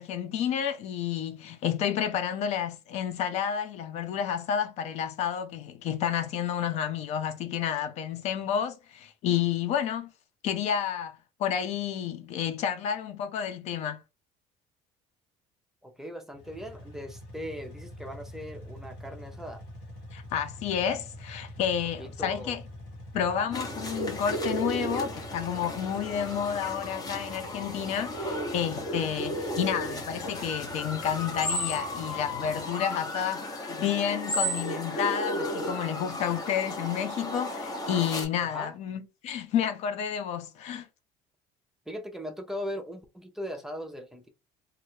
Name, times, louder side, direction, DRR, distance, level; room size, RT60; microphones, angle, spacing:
voice 1, 0.0-10.1 10.4-14.0 20.1-22.6 23.1-40.9, left 8 dB, 60° left, 0.6 m, -30 dB
voice 2, 15.8-19.6 22.0-22.5 23.4-23.5 38.4-38.8 41.9-44.3, equal, 5° right, 0.6 m, -39 dB
sound 1, 16.3-33.0, left 1 dB, 80° left, 1.4 m, -46 dB
sound 2, 23.5-38.2, equal, 30° left, 1.1 m, -34 dB
3.1 x 2.5 x 2.8 m
cardioid pair, 130°, 13 cm